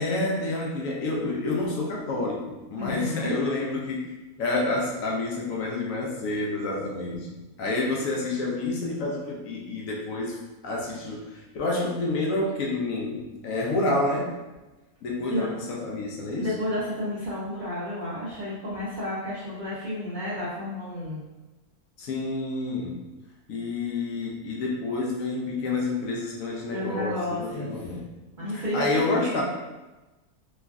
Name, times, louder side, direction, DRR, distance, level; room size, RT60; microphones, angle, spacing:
voice 1, 0.0-4.1 4.4-10.4 10.6-14.3 15.0-16.5 22.0-23.0 23.5-28.1 28.5-29.4, left 2 dB, 65° left, -2 dB, 0.9 m, -29 dB
voice 2, 2.8-3.3 15.3-15.5 16.4-21.2 26.7-27.7 28.4-29.4, left 1 dB, 65° right, -9 dB, 0.4 m, -31 dB
3.2 x 2.4 x 2.3 m, 1.1 s
omnidirectional pair, 1.6 m